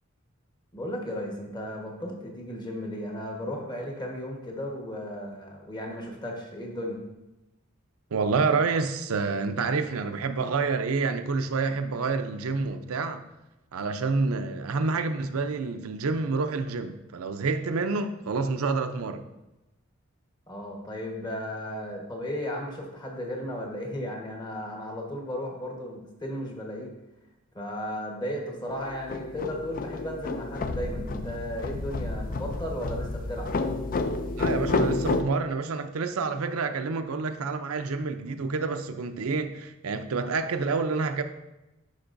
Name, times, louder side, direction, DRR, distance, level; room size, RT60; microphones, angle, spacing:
voice 1, 0.7-7.0 20.5-26.9 27.5-33.5, equal, 20° left, 0 dB, 1.2 m, -35 dB
voice 2, 8.1-13.2 13.7-19.2 34.4-41.2, right 4 dB, 80° right, 8 dB, 0.5 m, -28 dB
sound 1, 28.7-35.2, left 3 dB, 40° left, 0.4 m, -30 dB
11.5 x 4.7 x 2.6 m, 0.98 s
head